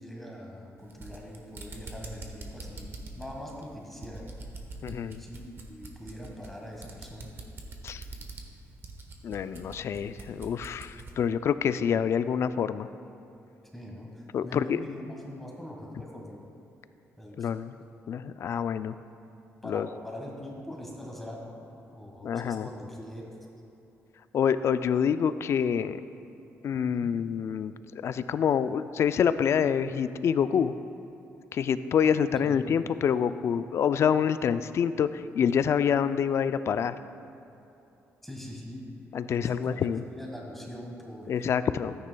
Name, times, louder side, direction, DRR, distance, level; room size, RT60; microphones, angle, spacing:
voice 1, 0.0-4.2 5.2-7.3 13.7-16.4 17.2-17.5 19.6-23.5 27.0-27.1 32.0-32.6 38.2-38.9 39.4-41.5, left 1 dB, 5° left, -2 dB, 1.4 m, -42 dB
sound 1, 0.8-11.2, right 3 dB, 45° right, 1.0 m, -44 dB
voice 2, 4.8-5.2 7.8-8.0 9.2-12.9 14.3-14.8 17.4-17.7 18.1-18.9 19.6-19.9 22.2-22.7 24.3-26.0 26.6-27.7 28.0-30.7 31.5-36.9 39.1-40.0 41.3-42.0, left 7 dB, 55° left, 13 dB, 0.3 m, -27 dB
13.5 x 9.5 x 2.3 m, 2.8 s
cardioid pair, 120°, 5 cm